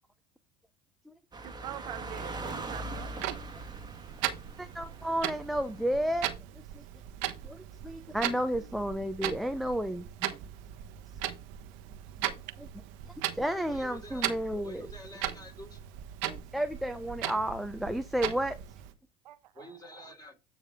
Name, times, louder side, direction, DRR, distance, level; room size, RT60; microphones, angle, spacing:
sound 1, 1.3-6.4, right 2 dB, 20° right, 1.5 m, -42 dB
voice 1, 1.4-3.4 7.2-7.4 8.1-8.7 19.2-19.7 20.0-20.1, right 13 dB, 80° right, 0.6 m, -45 dB
Clock, 2.9-18.9, right 13 dB, 60° right, 1.1 m, -38 dB
voice 2, 4.6-6.3 6.7-6.8 7.4-10.3 12.2-12.3 13.3-14.9 16.3-18.6, equal, ahead, 0.6 m, -32 dB
voice 3, 13.7-15.9 19.5-20.3, left 1 dB, 20° left, 3.4 m, -48 dB
9.5 x 4.8 x 3.6 m
hypercardioid pair, 75°, 21 cm